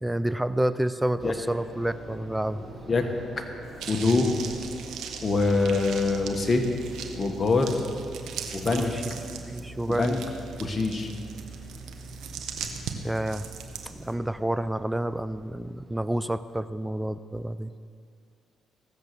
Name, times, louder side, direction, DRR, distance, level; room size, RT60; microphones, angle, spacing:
voice 1, 0.0-2.6 8.7-9.0 9.4-10.2 13.0-13.5 13.9-17.7, right 1 dB, 10° right, 13 dB, 0.4 m, -29 dB
sound 1, 1.2-16.3, right 2 dB, 35° right, 3.9 m, -44 dB
sound 2, 3.8-14.1, right 7 dB, 80° right, 1.2 m, -40 dB
voice 2, 3.9-4.3 5.2-6.6 7.2-7.7 8.5-8.9 9.9-10.2 10.6-11.1, left 3 dB, 35° left, 3 dB, 1.4 m, -24 dB
16.5 x 7.5 x 6.7 m, 2.3 s
cardioid pair, 90°, 0 cm